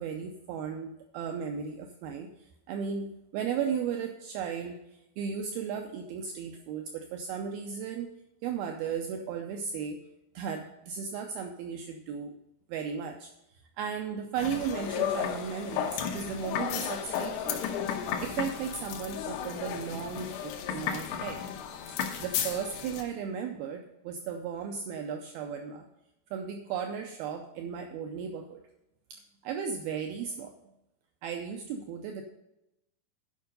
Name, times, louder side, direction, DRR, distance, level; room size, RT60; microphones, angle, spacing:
voice 1, 0.0-8.1 8.4-10.0 10.3-12.3 12.7-17.6 17.9-21.5 21.9-25.9 26.3-28.6 29.1-30.5 31.2-32.2, right 7 dB, 80° right, 4 dB, 2.4 m, -36 dB
sound 1, 14.4-23.0, left 8 dB, 85° left, 3.0 m, -34 dB
11.5 x 5.5 x 5.3 m, 0.89 s
omnidirectional pair, 4.6 m